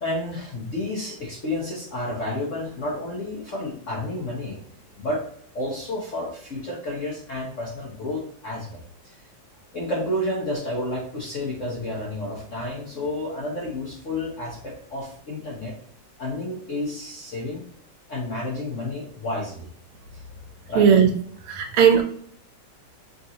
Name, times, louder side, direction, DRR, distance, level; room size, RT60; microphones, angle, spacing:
voice 1, 0.0-4.6 5.0-5.2 5.5-9.1 9.7-15.7 16.2-17.6 18.1-19.7 20.7-20.9, left 1 dB, 50° left, -4 dB, 0.9 m, -30 dB
voice 2, 20.7-21.1 21.4-22.0, right 7 dB, 80° right, 4 dB, 1.6 m, -16 dB
5.3 x 2.7 x 2.8 m, 0.62 s
omnidirectional pair, 2.4 m